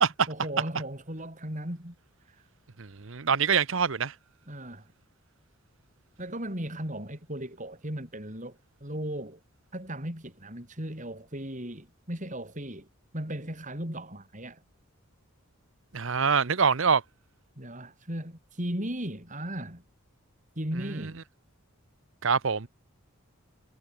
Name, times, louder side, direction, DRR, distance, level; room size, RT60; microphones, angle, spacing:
voice 1, 0.3-2.0 2.3-2.4 4.5-4.9 6.2-9.4 9.7-12.9 13.1-14.6 17.6-19.8 20.6-21.2, right 1 dB, 35° right, 7.4 m, -36 dB
voice 2, 2.8-4.1 15.9-17.0 20.9-21.1 22.2-22.7, right 6 dB, 65° right, 0.9 m, -25 dB
head